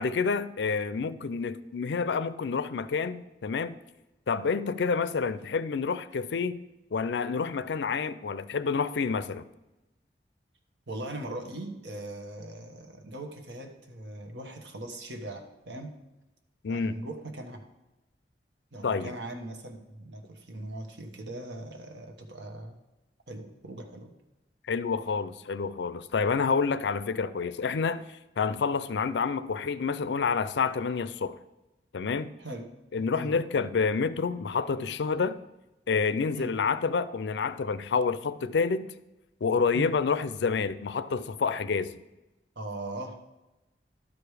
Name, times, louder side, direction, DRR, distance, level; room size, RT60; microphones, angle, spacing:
voice 1, 0.0-3.8 4.3-6.6 6.9-9.4 16.6-17.0 18.8-19.2 24.7-28.0 28.4-31.4 31.9-32.3 32.9-35.4 35.9-38.9 39.4-41.9, left 5 dB, 75° left, 0.4 m, -28 dB
voice 2, 10.9-15.9 16.7-17.6 18.7-22.8 23.3-24.1 32.4-32.6 33.2-33.3 36.3-36.5 39.7-39.9 42.5-43.3, right 1 dB, 80° right, 1.3 m, -40 dB
12.0 x 5.0 x 4.9 m
head